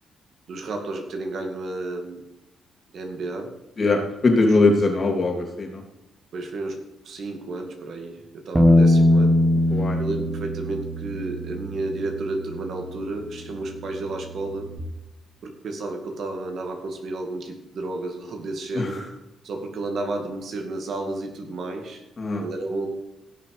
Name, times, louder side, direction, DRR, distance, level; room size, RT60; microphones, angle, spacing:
voice 1, 0.5-2.2 2.9-3.5 4.4-4.5 6.3-9.4 9.7-14.7 15.4-19.1 19.4-22.0 22.4-22.9, right 2 dB, 60° right, 3 dB, 2.3 m, -32 dB
voice 2, 3.8-5.8 9.7-10.0 18.7-19.0 22.2-22.4, left 2 dB, 35° left, 1 dB, 3.1 m, -21 dB
Bass guitar, 8.5-14.8, left 1 dB, 10° right, 1.6 m, -22 dB
16.5 x 6.7 x 5.0 m, 0.93 s
cardioid pair, 90°, 0 cm